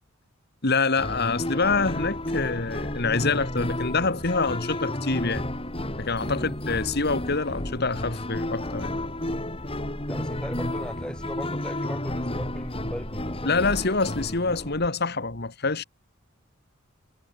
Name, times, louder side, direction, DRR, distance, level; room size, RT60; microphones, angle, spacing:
voice 1, 0.6-5.4 6.0-8.9 13.4-15.8, left 4 dB, 55° left, 2.2 m, -26 dB
sound 1, 1.0-14.9, left 1 dB, 30° left, 4.6 m, -32 dB
voice 2, 10.1-13.5, equal, 5° left, 3.4 m, -38 dB
head